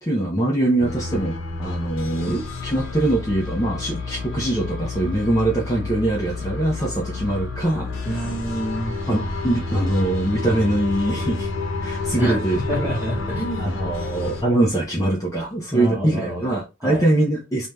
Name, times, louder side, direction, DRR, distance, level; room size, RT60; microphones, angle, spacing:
voice 1, 0.0-7.9 9.1-11.5 11.8-13.0 13.6-17.7, right 1 dB, 15° left, 0.6 m, -23 dB
sound 1, 0.8-14.4, left 3 dB, 80° left, 0.7 m, -30 dB
voice 2, 8.0-8.9 12.2-12.4 12.7-13.7 15.7-16.5 16.8-17.0, equal, 10° right, 1.2 m, -27 dB
2.7 x 2.2 x 3.2 m
head